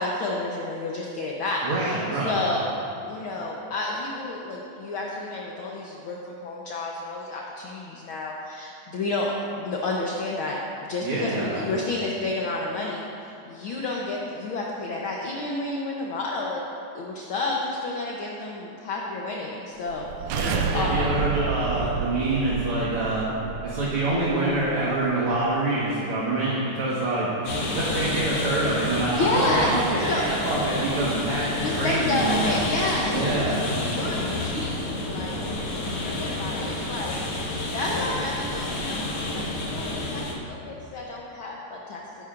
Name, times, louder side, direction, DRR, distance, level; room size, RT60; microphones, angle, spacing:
voice 1, 0.0-2.8 3.1-10.6 10.9-16.6 16.9-20.4 20.7-21.2 29.1-30.2 31.5-34.8 35.0-35.7 36.0-42.0, left 2 dB, 70° left, -2 dB, 1.2 m, -30 dB
voice 2, 1.6-2.5 11.0-11.6 20.3-23.3 23.6-27.3 27.7-32.6 33.1-33.7, right 2 dB, 55° right, -7 dB, 2.1 m, -26 dB
sound 1, 19.9-25.0, right 6 dB, 85° right, 2.0 m, -30 dB
sound 2, 27.4-40.3, left 2 dB, 55° left, 2.4 m, -30 dB
19.0 x 10.5 x 2.5 m, 2.8 s
omnidirectional pair, 3.4 m